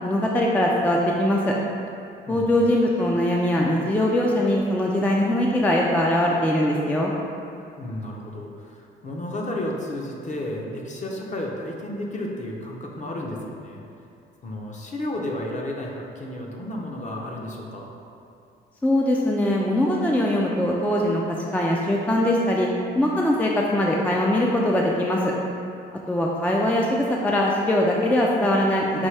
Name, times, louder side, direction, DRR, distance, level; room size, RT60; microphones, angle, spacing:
voice 1, 0.0-1.5 2.3-7.1 18.8-22.7 23.0-25.3 26.1-29.1, left 1 dB, 10° left, -2 dB, 0.3 m, -21 dB
voice 2, 2.3-2.6 7.8-13.8 14.4-17.9, left 1 dB, 40° left, -1 dB, 0.7 m, -32 dB
5.4 x 2.6 x 3.3 m, 2.5 s
cardioid pair, 90°, 20 cm